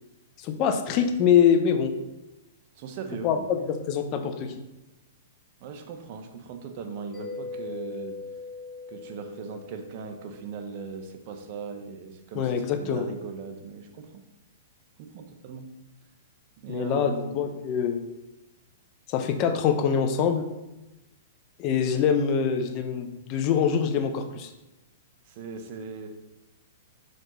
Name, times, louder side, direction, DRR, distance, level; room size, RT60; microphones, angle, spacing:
voice 1, 0.4-1.9 3.2-4.5 12.3-13.1 16.7-18.0 19.1-20.4 21.6-24.5, left 7 dB, 35° left, 7 dB, 0.8 m, -24 dB
voice 2, 2.7-3.5 5.6-8.2 8.9-14.2 15.0-15.7 16.6-17.5 25.3-26.1, right 5 dB, 45° right, 6 dB, 0.9 m, -39 dB
Mallet percussion, 7.1-10.6, left 3 dB, 5° right, 1.8 m, -40 dB
5.8 x 5.2 x 3.9 m, 0.98 s
hypercardioid pair, 145°, 0 cm